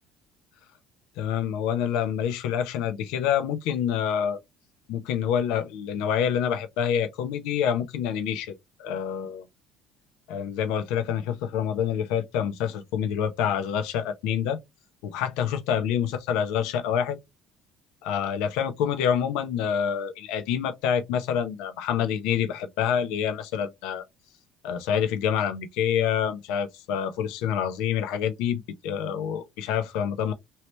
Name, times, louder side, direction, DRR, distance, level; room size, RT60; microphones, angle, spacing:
voice 1, 1.2-4.4 4.9-8.5 8.8-9.4 10.3-14.6 15.0-17.2 18.0-24.0 24.6-30.3, left 8 dB, 80° left, 0.6 m, -27 dB
3.1 x 2.8 x 3.1 m
cardioid pair, 165°, 0 cm